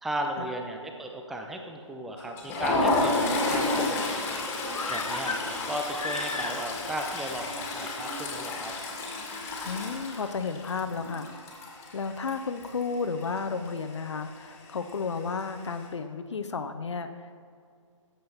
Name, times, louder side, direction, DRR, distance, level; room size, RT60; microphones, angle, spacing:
voice 1, 0.0-4.5 4.9-8.7, right 1 dB, ahead, 3 dB, 0.3 m, -35 dB
Toilet flush, 2.2-12.9 13.2-13.5 13.8-13.9 14.9-15.4, left 2 dB, 15° left, 2.2 m, -31 dB
sound 1, 4.7-6.9 7.2-7.3, left 3 dB, 85° left, 1.0 m, -35 dB
voice 2, 9.6-11.3 11.9-17.4, left 5 dB, 60° left, 8 dB, 0.8 m, -33 dB
16.5 x 7.8 x 4.2 m, 2.2 s
figure-of-eight pair, 140°, 17 cm